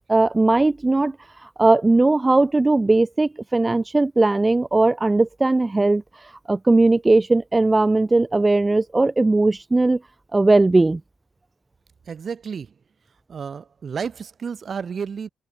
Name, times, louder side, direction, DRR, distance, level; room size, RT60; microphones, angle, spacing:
voice 1, 0.1-1.2 1.6-6.0 6.5-10.0 10.3-11.0, right 2 dB, 20° right, 0.6 m, -18 dB
voice 2, 12.1-12.7 13.3-15.3, right 6 dB, 45° right, 3.2 m, -31 dB
cardioid pair, 90°, 0 cm